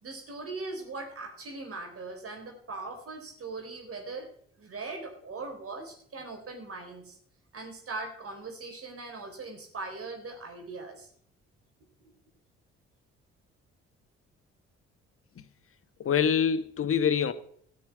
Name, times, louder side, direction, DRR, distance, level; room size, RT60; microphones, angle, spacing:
voice 1, 0.0-4.3 4.6-7.2 7.5-11.1 12.0-12.1, right 3 dB, 50° right, 4.0 m, -40 dB
voice 2, 16.0-17.3, left 7 dB, 45° left, 1.4 m, -25 dB
14.0 x 6.9 x 8.1 m
hypercardioid pair, 55°, 30 cm